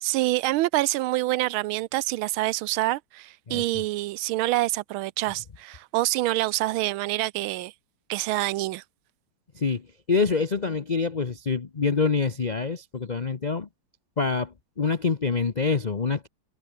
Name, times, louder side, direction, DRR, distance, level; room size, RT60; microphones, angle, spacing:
voice 1, 0.0-7.7 8.1-8.8, right 17 dB, 85° right, 1.4 m, -26 dB
voice 2, 3.5-3.8 9.5-13.7 14.2-16.3, left 4 dB, 50° left, 0.5 m, -26 dB
omnidirectional pair, 2.2 m